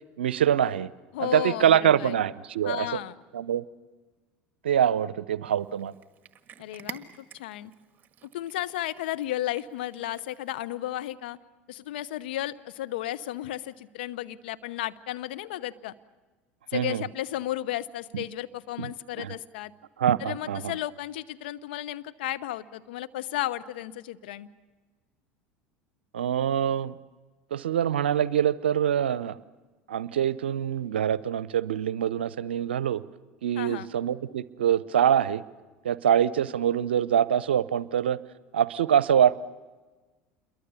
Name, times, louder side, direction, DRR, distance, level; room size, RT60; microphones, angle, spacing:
voice 1, 0.2-0.9 1.2-2.9 3.3-3.6 4.6-5.9 16.7-17.0 18.1-18.2 18.8-18.9 19.2-19.3 20.0-20.7 26.1-26.9 27.5-29.4 29.9-33.0 33.4-35.4 35.8-38.2 38.5-39.4, right 9 dB, 80° right, 18 dB, 0.7 m, -24 dB
voice 2, 1.1-2.2 2.6-3.2 6.6-7.7 8.3-11.4 11.7-15.9 16.7-19.7 20.2-24.5 33.6-33.9, left 13 dB, 70° left, 12 dB, 0.8 m, -34 dB
Cat, 5.6-10.8, right 7 dB, 35° right, 1.6 m, -49 dB
28.0 x 22.5 x 7.0 m, 1.3 s
hypercardioid pair, 75°, 6 cm